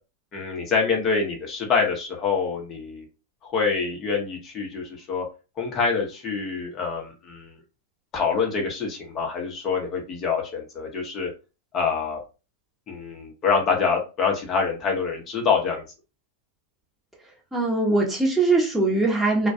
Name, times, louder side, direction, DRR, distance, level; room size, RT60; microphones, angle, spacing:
voice 1, 0.3-3.1 3.4-5.3 5.6-7.5 8.1-11.3 11.7-12.2 12.9-15.8, left 5 dB, 35° left, 1 dB, 0.8 m, -26 dB
voice 2, 17.5-19.5, right 3 dB, 5° right, -3 dB, 0.8 m, -21 dB
2.2 x 2.2 x 2.6 m, 0.31 s
hypercardioid pair, 105°, 0 cm